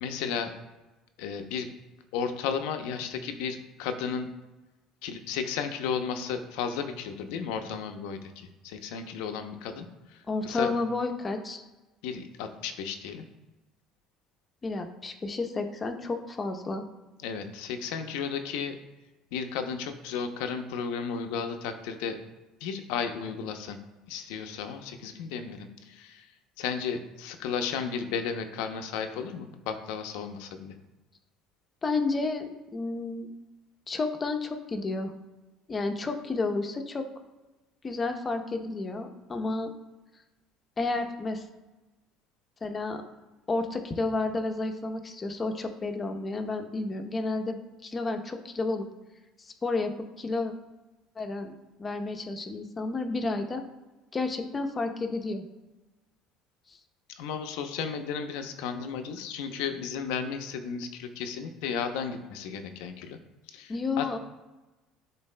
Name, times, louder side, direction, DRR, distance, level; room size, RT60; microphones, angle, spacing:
voice 1, 0.0-0.5 1.2-1.7 2.1-4.3 5.0-10.7 12.0-13.3 17.2-18.8 19.3-22.2 22.6-23.8 24.1-30.7 57.1-63.2 63.5-64.1, left 6 dB, 90° left, 7 dB, 0.7 m, -34 dB
voice 2, 10.3-11.6 14.6-16.8 31.8-33.3 33.9-35.1 35.7-37.1 37.8-39.7 40.8-41.4 42.6-43.0 43.5-48.9 49.4-50.5 51.2-51.5 51.8-53.6 54.1-55.4 56.7-56.8 63.7-64.2, left 3 dB, 25° left, 5 dB, 0.7 m, -31 dB
11.0 x 4.0 x 2.2 m, 1.1 s
cardioid pair, 125°, 0 cm